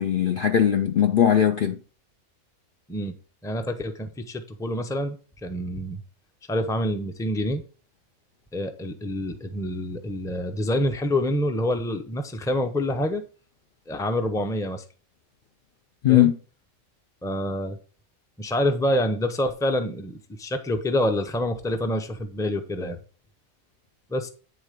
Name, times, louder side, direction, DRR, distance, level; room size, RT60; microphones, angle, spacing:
voice 1, 0.0-1.8 16.0-16.3, left 10 dB, 55° left, 0.6 m, -19 dB
voice 2, 3.4-6.0 6.5-7.6 8.5-13.2 13.9-14.8 16.1-16.3 17.2-17.8 18.4-23.0 24.1-24.3, left 1 dB, 5° left, 0.6 m, -27 dB
9.7 x 3.7 x 5.1 m
omnidirectional pair, 1.4 m